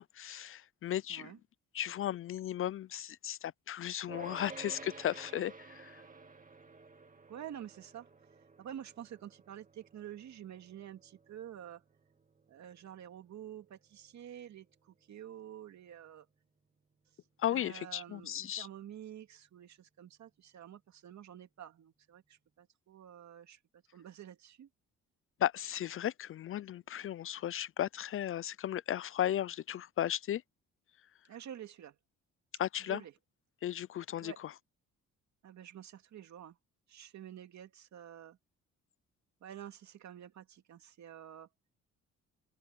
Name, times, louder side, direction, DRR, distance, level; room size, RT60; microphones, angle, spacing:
voice 1, 0.0-1.3 1.7-6.0 17.4-18.7 25.4-30.4 32.6-33.0 33.6-34.5, left 11 dB, 45° left, 0.4 m, -35 dB
sound 1, 4.1-15.4, right 4 dB, 25° right, 2.4 m, -53 dB
voice 2, 7.3-8.1 8.6-11.8 12.5-16.3 17.5-24.7 31.3-32.0 32.8-33.1 34.2-34.4 35.4-36.6 36.9-38.4 39.4-41.5, right 10 dB, 65° right, 2.6 m, -49 dB
open air
cardioid pair, 90°, 30 cm